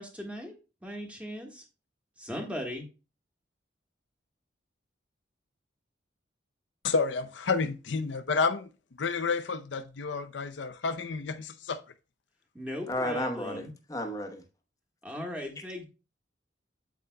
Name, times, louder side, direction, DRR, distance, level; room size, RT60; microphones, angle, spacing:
voice 1, 0.0-1.6 2.2-2.8 12.5-13.7 15.0-15.9, left 1 dB, 5° right, 1.4 m, -38 dB
voice 2, 6.8-8.7 9.0-11.8, left 4 dB, 75° left, 0.6 m, -30 dB
voice 3, 12.9-14.4, left 1 dB, 20° left, 0.9 m, -33 dB
8.5 x 8.1 x 2.2 m
head